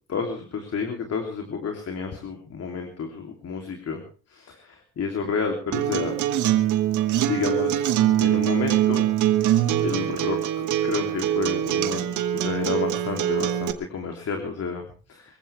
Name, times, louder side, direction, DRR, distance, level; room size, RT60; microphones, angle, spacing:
voice 1, 0.1-4.0 4.3-6.1 7.2-7.9 8.2-9.1 9.8-15.4, left 5 dB, 55° left, 3 dB, 3.2 m, -30 dB
Acoustic guitar, 5.7-13.7, right 11 dB, 80° right, 1.6 m, -23 dB
24.0 x 15.0 x 3.5 m, 0.38 s
cardioid pair, 90°, 30 cm